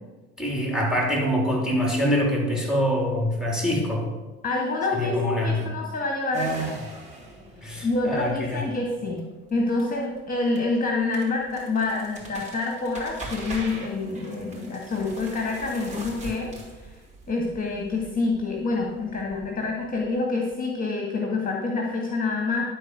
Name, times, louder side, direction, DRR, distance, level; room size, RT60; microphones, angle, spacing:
voice 1, 0.4-4.1 4.9-5.7 7.6-8.6, equal, ahead, -1 dB, 3.6 m, -25 dB
voice 2, 4.4-6.9 7.8-9.2 9.5-16.9 17.3-22.7, left 3 dB, 30° left, 0 dB, 2.0 m, -27 dB
sound 1, 6.3-20.6, right 3 dB, 25° right, 3.6 m, -40 dB
11.5 x 4.5 x 6.3 m, 1.2 s
hypercardioid pair, 65°, 29 cm